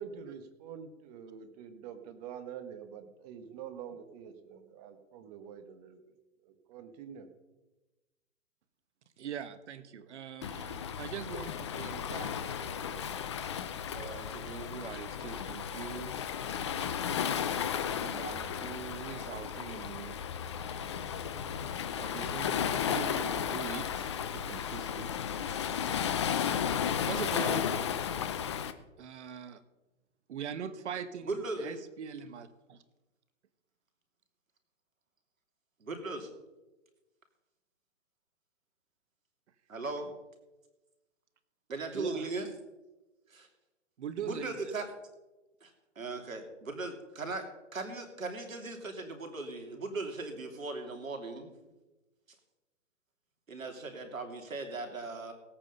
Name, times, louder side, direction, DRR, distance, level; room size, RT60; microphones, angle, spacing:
voice 1, 0.0-6.1 6.4-7.3, right 7 dB, 30° right, 8 dB, 1.4 m, -46 dB
voice 2, 9.2-13.1 13.9-16.3 18.0-20.2 21.9-25.3 27.1-27.7 29.0-29.6 30.3-32.8 41.9-42.3 44.0-44.7, right 7 dB, 60° right, 12 dB, 1.3 m, -42 dB
Waves surf, 10.4-28.7, left 8 dB, 25° left, 0.4 m, -34 dB
voice 3, 31.3-31.8 35.8-36.3 39.7-40.1 41.7-42.5 43.3-43.5 44.2-44.8 45.6-47.4 47.7-51.5 53.5-55.3, right 3 dB, 90° right, 4 dB, 3.0 m, -38 dB
17.0 x 8.9 x 5.5 m, 1.1 s
hypercardioid pair, 145°, 39 cm